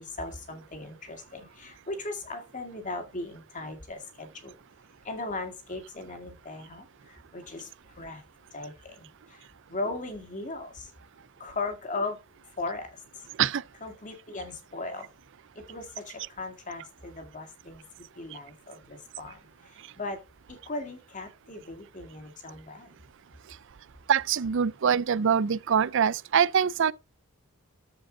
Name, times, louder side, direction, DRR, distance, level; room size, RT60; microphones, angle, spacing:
voice 1, 0.0-4.5 5.0-7.7 8.0-8.2 8.5-10.9 11.4-12.2 12.6-13.0 13.8-15.1 15.7-17.8 18.2-19.4 20.0-20.2 20.5-22.9, left 2 dB, 35° left, 2.1 m, -38 dB
voice 2, 24.1-26.9, right 7 dB, 55° right, 0.4 m, -24 dB
13.5 x 5.1 x 3.8 m
head